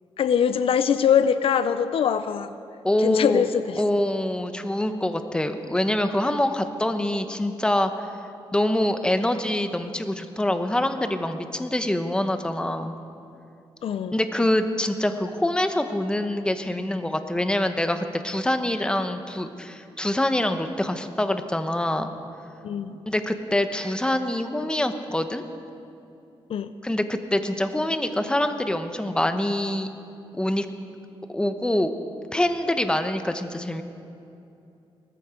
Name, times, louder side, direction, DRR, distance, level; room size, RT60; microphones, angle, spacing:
voice 1, 0.2-2.5 3.0-3.8 13.8-14.2 22.6-23.0 26.5-26.7, left 8 dB, 70° left, 12 dB, 0.5 m, -22 dB
voice 2, 2.8-3.5 3.8-8.1 8.5-12.9 14.1-22.1 23.1-25.4 26.8-29.9 30.3-30.7 31.3-31.9 32.3-33.8, left 1 dB, 10° left, 8 dB, 1.0 m, -25 dB
19.0 x 14.0 x 5.1 m, 2.7 s
cardioid pair, 100°, 10 cm